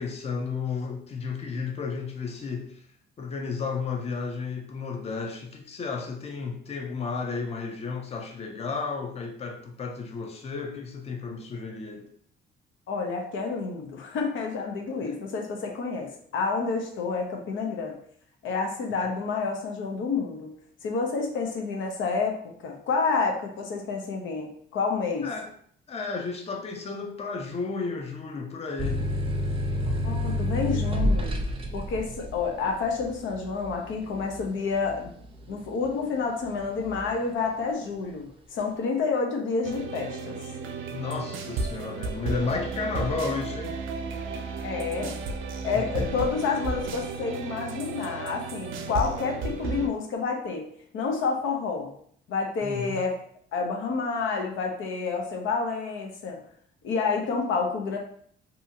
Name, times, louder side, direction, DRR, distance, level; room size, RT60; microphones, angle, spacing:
voice 1, 0.0-2.8 3.2-12.1 19.0-19.1 25.2-25.5 25.9-29.1 40.9-43.8 45.7-46.3 52.6-53.0, left 4 dB, 30° left, 0.5 m, -33 dB
voice 2, 12.9-18.0 18.4-25.3 30.0-31.4 31.7-35.1 35.5-40.4 44.6-45.2 45.6-51.9 52.3-53.2 53.5-56.4 56.8-58.0, left 4 dB, 75° left, 0.6 m, -29 dB
sound 1, 28.8-36.1 36.5-37.2, left 1 dB, 25° right, 0.5 m, -29 dB
sound 2, 39.6-49.9, right 4 dB, 85° right, 0.4 m, -33 dB
2.7 x 2.4 x 2.7 m
cardioid pair, 90°, 20 cm